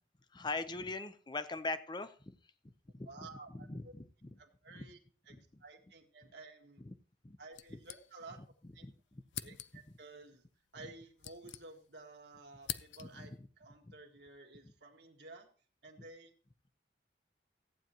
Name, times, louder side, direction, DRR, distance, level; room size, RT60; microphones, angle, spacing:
voice 1, 0.3-2.4 2.9-3.3 3.5-4.3 4.7-4.9 5.3-5.4 6.8-7.0 7.2-7.4 7.7-7.8 8.6-9.5 10.8-10.9 13.0-13.5 14.6-14.7, left 3 dB, 25° left, 12 dB, 0.6 m, -42 dB
voice 2, 3.1-3.9 4.4-5.0 5.3-6.8 7.4-8.4 8.7-8.9 9.4-10.4 10.7-15.5 15.8-16.3, right 3 dB, 70° right, 2 dB, 1.8 m, -53 dB
sound 1, 7.5-8.5 8.8-8.9 9.3-10.0 10.8-12.1 12.4-13.3, left 11 dB, 85° left, 0.5 m, -46 dB
14.5 x 9.2 x 2.9 m, 0.40 s
head